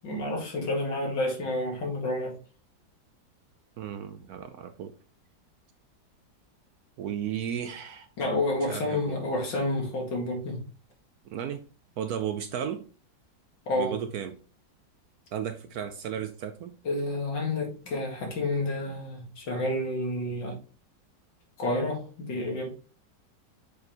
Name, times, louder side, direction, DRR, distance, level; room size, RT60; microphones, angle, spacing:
voice 1, 0.0-2.4 8.2-10.7 13.7-14.0 16.8-20.6 21.6-22.7, left 1 dB, 75° left, 2.6 m, -29 dB
voice 2, 3.8-4.9 7.0-8.1 8.5-9.2 11.3-11.7 12.0-12.9 13.7-14.4 15.3-16.7, right 9 dB, 70° right, 0.9 m, -34 dB
6.9 x 4.4 x 3.3 m
omnidirectional pair, 2.0 m